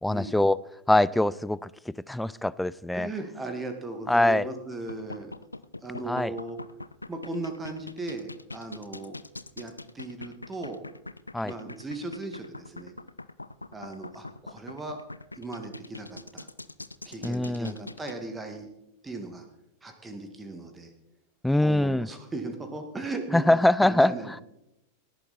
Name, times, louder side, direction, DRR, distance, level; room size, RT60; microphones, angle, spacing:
voice 1, 0.0-0.6 0.9-1.7 2.1-3.1 4.1-4.4 6.1-6.3 11.3-11.5 17.2-17.7 21.4-22.1 23.3-24.1, left 1 dB, 5° left, 20 dB, 0.4 m, -23 dB
voice 2, 2.9-5.4 5.8-6.6 7.1-9.2 9.6-10.8 11.4-12.9 13.7-15.0 15.4-16.5 17.1-18.7 19.0-19.5 19.8-20.9 21.6-24.4, right 2 dB, 15° right, 6 dB, 1.9 m, -37 dB
sound 1, 4.7-18.1, left 2 dB, 85° left, 0.5 m, -42 dB
18.5 x 11.5 x 4.2 m, 0.84 s
figure-of-eight pair, 90°, 0 cm